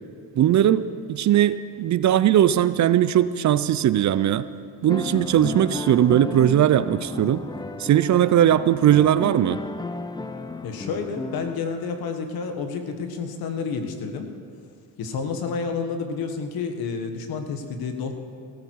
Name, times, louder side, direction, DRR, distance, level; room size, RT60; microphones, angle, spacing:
voice 1, 0.4-4.4 4.8-7.4 7.8-9.6, right 11 dB, 50° right, 14 dB, 0.6 m, -19 dB
sound 1, 4.9-11.6, left 2 dB, 10° left, 0.6 m, -34 dB
voice 2, 10.6-14.3 15.0-18.1, left 5 dB, 80° left, 6 dB, 1.6 m, -30 dB
18.0 x 14.0 x 4.7 m, 2.3 s
cardioid pair, 90°, 36 cm